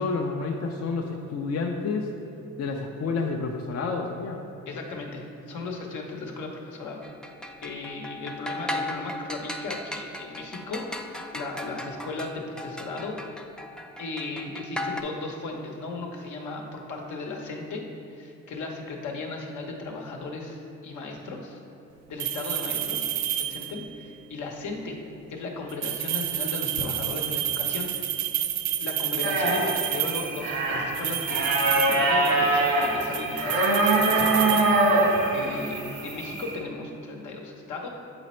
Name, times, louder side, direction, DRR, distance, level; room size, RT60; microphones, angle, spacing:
voice 1, 0.0-2.1 2.6-4.4, left 4 dB, 55° left, 1 dB, 0.6 m, -29 dB
voice 2, 4.7-7.0 7.6-13.2 14.0-17.8 18.1-21.6 22.1-23.1 23.4-25.0 25.3-27.9 28.8-35.0 35.3-37.9, left 3 dB, 75° left, 1 dB, 1.0 m, -36 dB
sound 1, 7.0-15.0, left 1 dB, 5° left, 0.4 m, -36 dB
sound 2, 22.2-23.9 25.7-30.4 30.9-32.5 32.8-35.3, right 11 dB, 70° right, 0.5 m, -30 dB
sound 3, 29.2-36.5, right 2 dB, 90° right, 1.5 m, -24 dB
7.8 x 4.1 x 4.3 m, 2.9 s
cardioid pair, 90°, 30 cm